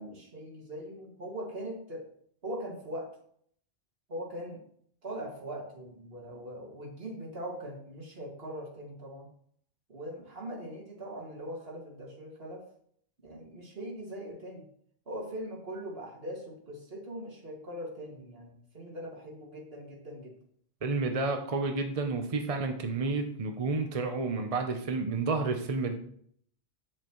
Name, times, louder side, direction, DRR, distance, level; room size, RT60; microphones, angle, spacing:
voice 1, 0.0-2.0 2.4-3.1 4.1-4.6 5.0-9.3 9.9-12.6 13.2-14.7 15.1-20.4, equal, 65° right, -2 dB, 2.3 m, -41 dB
voice 2, 20.8-25.9, right 3 dB, 40° right, 5 dB, 0.7 m, -30 dB
8.3 x 7.4 x 3.0 m, 0.64 s
omnidirectional pair, 1.1 m